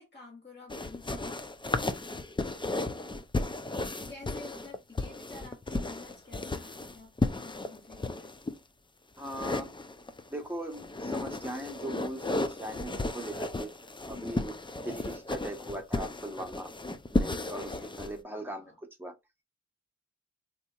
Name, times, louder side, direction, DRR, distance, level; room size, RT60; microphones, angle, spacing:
voice 1, 0.0-3.0 4.1-8.4 14.1-14.5 17.6-18.7, left 3 dB, 35° left, 1.6 m, -51 dB
sound 1, 0.7-8.5 9.2-10.3 10.7-18.1, left 2 dB, 15° left, 0.3 m, -34 dB
voice 2, 9.2-9.7 10.3-13.7 14.1-14.5 14.8-16.7 17.1-18.7 19.0-19.1, right 1 dB, 5° right, 0.9 m, -39 dB
4.1 x 2.8 x 2.3 m
wide cardioid pair, 75°, 30 cm